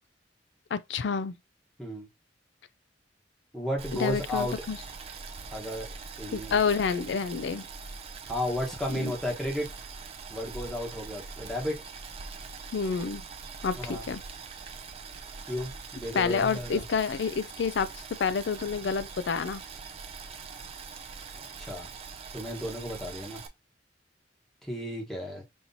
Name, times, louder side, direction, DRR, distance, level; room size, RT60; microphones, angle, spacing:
voice 1, 0.7-1.3 3.9-4.8 6.3-7.7 8.9-9.1 12.7-13.2 13.6-14.2 16.1-19.6, left 5 dB, 75° left, 0.4 m, -29 dB
voice 2, 3.5-4.5 5.5-5.9 6.2-6.6 8.3-9.7 10.3-11.7 13.8-14.0 15.5-16.8 21.3-21.9 22.3-23.4 24.7-25.4, left 1 dB, 5° left, 1.0 m, -33 dB
Boiling, 3.8-23.5, right 4 dB, 35° right, 0.4 m, -43 dB
5.5 x 2.9 x 2.6 m
head